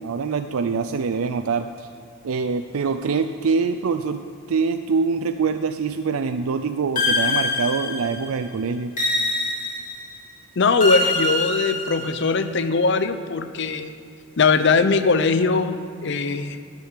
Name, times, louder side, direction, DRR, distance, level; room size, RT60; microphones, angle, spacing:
voice 1, 0.0-1.9 2.2-8.9, right 5 dB, 80° right, 9 dB, 0.4 m, -24 dB
sound 1, 7.0-8.3 9.0-10.1 10.8-12.3, left 2 dB, 35° left, 2.3 m, -24 dB
voice 2, 10.6-13.9 14.4-16.6, left 4 dB, 55° left, 11 dB, 0.6 m, -20 dB
12.0 x 6.9 x 8.2 m, 2.6 s
head